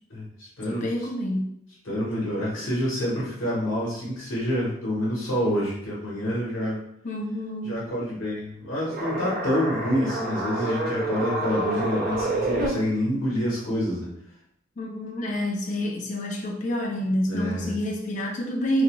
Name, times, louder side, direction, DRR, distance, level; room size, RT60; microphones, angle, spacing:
voice 1, 0.1-0.9 1.8-6.8 7.6-14.1 17.3-17.7, equal, 85° left, -6 dB, 0.9 m, -27 dB
voice 2, 0.7-1.5 7.0-7.7 14.8-18.8, equal, 40° left, 0 dB, 0.3 m, -28 dB
sound 1, 8.8-12.7, right 1 dB, 45° right, 0.5 m, -28 dB
2.3 x 2.2 x 2.9 m, 0.71 s
head